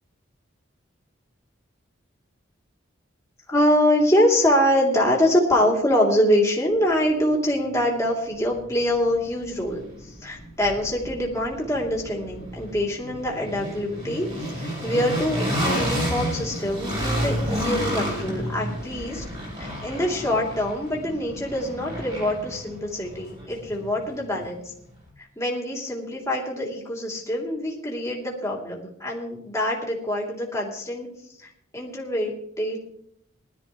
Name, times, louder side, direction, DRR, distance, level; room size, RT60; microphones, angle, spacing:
voice 1, 3.5-19.2 19.6-24.7 25.4-31.1 31.4-32.8, left 1 dB, 15° left, -2 dB, 2.9 m, -24 dB
sound 1, 8.0-8.1 8.5-24.5, equal, 30° right, 6.1 m, -31 dB
20.5 x 13.0 x 3.1 m, 0.72 s
head